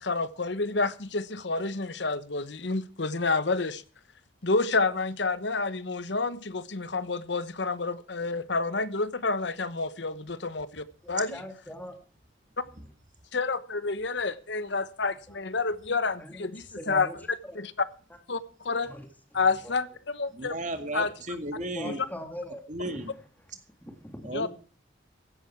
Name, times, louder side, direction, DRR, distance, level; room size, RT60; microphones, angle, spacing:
voice 1, 0.0-3.8 4.4-11.4 13.3-17.1 17.5-17.7 18.3-18.9 19.3-20.6 20.9-21.1 21.8-22.1 24.3-24.5, left 3 dB, 65° left, 1.1 m, -29 dB
voice 2, 11.0-11.9 15.3-15.4 16.2-16.5 16.8-17.2 18.9-19.1 19.6-19.7 21.6-23.0 23.8-24.5, equal, 10° left, 2.4 m, -41 dB
voice 3, 20.3-22.0 22.7-23.1 24.2-24.5, right 1 dB, 40° right, 2.0 m, -34 dB
15.5 x 11.5 x 4.6 m
head